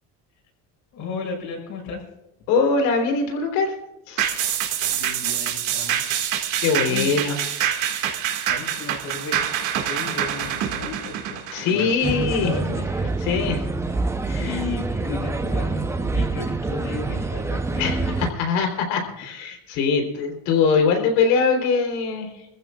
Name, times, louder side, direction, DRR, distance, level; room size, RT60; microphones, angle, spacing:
voice 1, 0.9-2.0 4.9-6.0 6.9-7.2 8.4-11.4 11.7-13.1 14.3-18.4, left 4 dB, 55° left, 0 dB, 6.6 m, -34 dB
voice 2, 2.5-3.7 4.1-4.4 6.6-7.4 11.5-12.5 13.2-13.7 14.2-14.6 17.8-22.5, left 5 dB, 90° left, 4 dB, 3.8 m, -22 dB
sound 1, 4.2-12.9 13.3-13.4, right 10 dB, 60° right, 2.1 m, -26 dB
sound 2, 12.0-18.3, right 3 dB, 10° right, 0.7 m, -26 dB
26.5 x 15.0 x 2.5 m, 0.88 s
cardioid pair, 160°, 34 cm